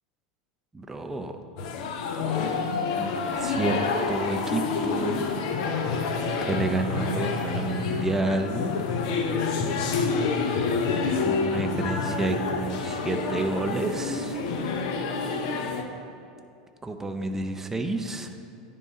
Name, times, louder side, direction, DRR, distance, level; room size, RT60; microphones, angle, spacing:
voice 1, 0.7-1.3 3.0-3.8 4.1-5.3 6.4-9.0 11.2-14.4 16.8-18.3, right 2 dB, 10° right, 5 dB, 0.5 m, -30 dB
sound 1, 1.6-15.8, left 4 dB, 65° left, 0.6 m, -28 dB
9.9 x 3.7 x 4.1 m, 2.6 s
hypercardioid pair, 105°, 4 cm